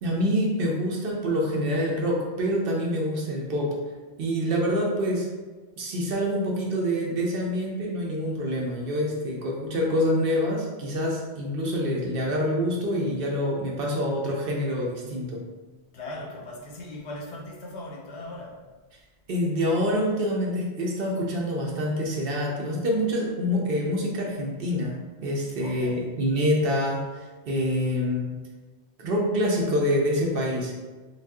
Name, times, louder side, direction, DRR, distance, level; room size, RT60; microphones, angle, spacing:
voice 1, 0.0-3.8 4.2-5.3 5.8-15.4 19.3-28.3 29.0-30.7, equal, 60° right, -1 dB, 0.7 m, -26 dB
voice 2, 15.9-18.6 25.6-26.1, left 1 dB, 80° left, -1 dB, 0.9 m, -39 dB
2.6 x 2.3 x 3.5 m, 1.3 s
omnidirectional pair, 1.1 m